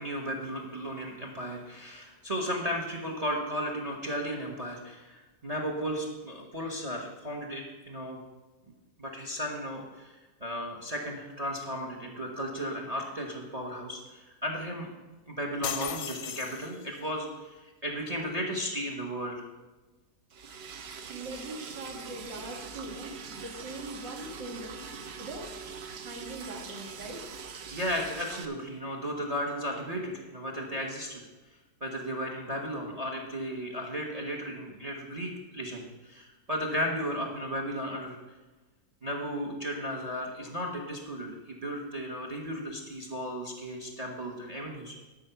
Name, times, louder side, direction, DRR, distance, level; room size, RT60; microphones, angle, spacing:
voice 1, 0.0-8.2 9.0-10.1 10.4-14.9 15.3-17.5 17.8-19.5 27.7-31.2 31.8-38.2 39.0-44.9, equal, 25° right, 2 dB, 1.1 m, -35 dB
sound 1, 15.6-17.1, left 9 dB, 70° left, 1.1 m, -37 dB
Liquid, 20.3-28.5, right 5 dB, 60° right, 0.7 m, -43 dB
voice 2, 21.1-24.9 25.2-25.5 26.0-27.2, right 2 dB, 80° right, 2 dB, 2.4 m, -41 dB
13.0 x 5.5 x 5.7 m, 1.2 s
omnidirectional pair, 1.9 m